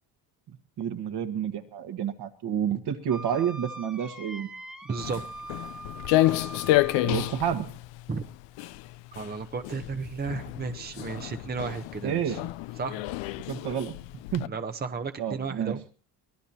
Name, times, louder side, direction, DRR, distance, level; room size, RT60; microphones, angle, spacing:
voice 1, 0.5-4.5 7.0-7.7 12.0-12.4 13.5-14.0 14.3-14.5 15.2-15.8, right 9 dB, 55° right, 7 dB, 1.9 m, -30 dB
Wind instrument woodwind instrument, 3.1-7.5, right 2 dB, ahead, 1.3 m, -42 dB
voice 2, 4.8-5.5 8.1-8.2 9.1-12.4 12.8-13.0 14.5-15.8, right 4 dB, 20° right, 8 dB, 1.0 m, -34 dB
Walk footsteps, 5.0-14.5, left 17 dB, 65° left, 0.8 m, -30 dB
24.0 x 18.0 x 2.9 m, 0.41 s
supercardioid pair, 75°, 48 cm